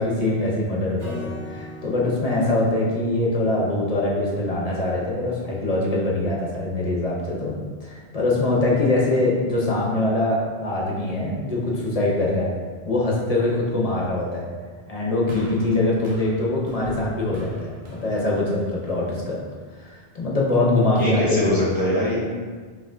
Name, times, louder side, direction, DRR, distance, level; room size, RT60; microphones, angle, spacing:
voice 1, 0.0-7.5 7.8-12.5 12.8-14.5 14.9-19.4 19.8-21.7 22.0-22.2, left 2 dB, 40° left, -4 dB, 0.8 m, -23 dB
Acoustic guitar / Strum, 1.0-4.3, left 2 dB, 40° right, 1.7 m, -40 dB
sound 1, 15.3-19.6 20.4-20.5, equal, 80° right, 1.1 m, -40 dB
voice 2, 21.0-22.2, left 1 dB, 20° left, -7 dB, 1.1 m, -22 dB
5.5 x 2.7 x 2.6 m, 1.5 s
omnidirectional pair, 1.1 m